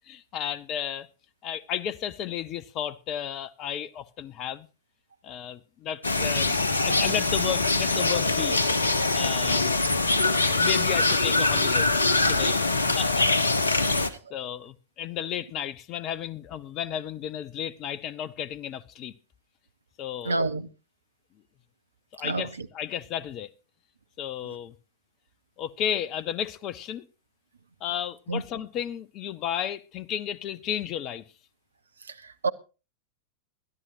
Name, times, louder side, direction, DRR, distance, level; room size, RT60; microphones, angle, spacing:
voice 1, 0.1-1.1 1.4-4.7 5.2-8.6 9.1-9.7 10.5-11.9 12.3-12.6 13.0-13.5 13.8-19.1 20.0-20.4 22.1-23.5 24.2-24.7 25.6-27.1 27.8-31.2, left 10 dB, 35° left, 0.8 m, -33 dB
sound 1, 6.0-14.1, left 3 dB, 75° left, 1.0 m, -23 dB
voice 2, 20.2-20.7 22.2-22.7 28.3-28.4 32.1-32.5, right 3 dB, 75° right, 0.8 m, -29 dB
22.0 x 12.5 x 2.6 m
figure-of-eight pair, 90°, 0 cm